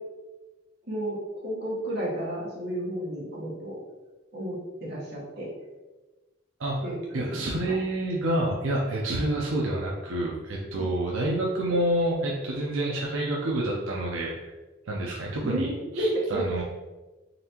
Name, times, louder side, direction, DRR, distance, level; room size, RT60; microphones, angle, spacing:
voice 1, 0.9-1.2 1.4-3.8 4.3-5.5 6.8-7.7 10.7-10.8 15.4-15.7 16.0-16.6, right 1 dB, 55° right, -5 dB, 1.2 m, -32 dB
voice 2, 7.1-14.5 14.9-15.7 16.0-16.6, right 1 dB, 85° right, -3 dB, 0.6 m, -28 dB
4.0 x 3.3 x 2.9 m, 1.2 s
head